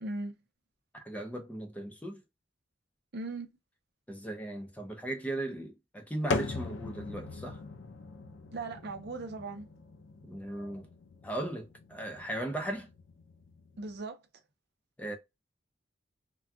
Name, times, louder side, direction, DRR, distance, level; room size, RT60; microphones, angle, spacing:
voice 1, 0.0-0.4 3.1-3.5 8.5-9.7 13.8-14.2, right 3 dB, 60° right, 0.6 m, -38 dB
voice 2, 0.9-2.2 4.1-7.6 10.3-10.9 11.2-12.9 15.0-15.2, right 1 dB, 10° left, 0.6 m, -37 dB
sound 1, 6.3-14.0, left 3 dB, 85° left, 0.4 m, -40 dB
2.3 x 2.2 x 3.6 m
head